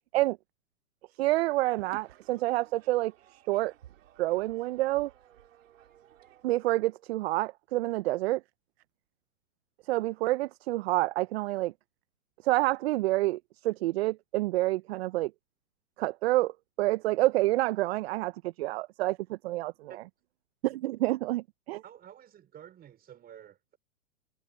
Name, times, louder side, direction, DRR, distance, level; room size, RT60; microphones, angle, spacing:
voice 1, 1.2-3.7 4.2-5.1 6.4-8.4 9.9-11.7 12.4-15.3 16.0-19.9 20.6-21.8, right 18 dB, 45° right, 0.8 m, -28 dB
sound 1, 1.3-6.4, right 12 dB, 65° right, 2.8 m, -55 dB
voice 2, 21.8-23.8, right 10 dB, 20° right, 5.1 m, -51 dB
hypercardioid pair, 125°, 42 cm